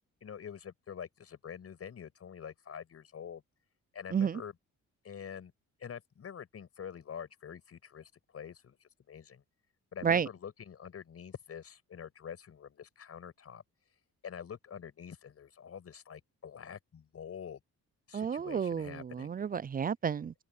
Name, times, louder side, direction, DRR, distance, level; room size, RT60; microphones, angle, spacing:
voice 1, 0.2-3.4 3.9-4.5 5.0-5.5 5.8-9.4 9.9-13.6 14.2-17.6 18.1-19.3, left 8 dB, 50° left, 5.9 m, -46 dB
voice 2, 18.1-20.3, right 7 dB, 30° right, 0.4 m, -31 dB
open air
cardioid pair, 90°, 30 cm